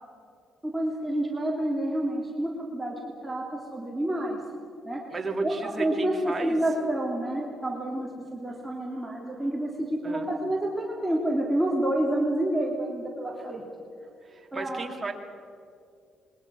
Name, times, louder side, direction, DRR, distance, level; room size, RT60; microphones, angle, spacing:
voice 1, 0.6-2.9 3.2-3.5 3.7-4.4 4.8-5.0 5.4-13.6 14.5-14.8, right 1 dB, 10° right, -3 dB, 3.0 m, -28 dB
voice 2, 5.1-6.6 10.0-10.3 14.3-15.1, right 3 dB, 25° right, 2 dB, 2.9 m, -33 dB
27.0 x 22.0 x 6.3 m, 2.5 s
cardioid pair, 90°, 0 cm